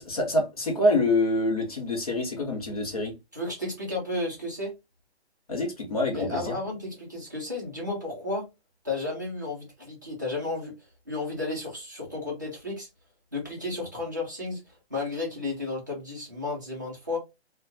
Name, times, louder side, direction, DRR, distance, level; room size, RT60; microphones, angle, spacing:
voice 1, 0.0-3.1 5.5-6.6, left 1 dB, 35° left, 0.7 m, -26 dB
voice 2, 3.3-4.7 6.1-8.4 8.8-10.7 11.1-12.9 13.3-14.6 14.9-17.2, left 2 dB, 15° right, 0.5 m, -33 dB
2.5 x 2.2 x 2.5 m
hypercardioid pair, 170°, 33 cm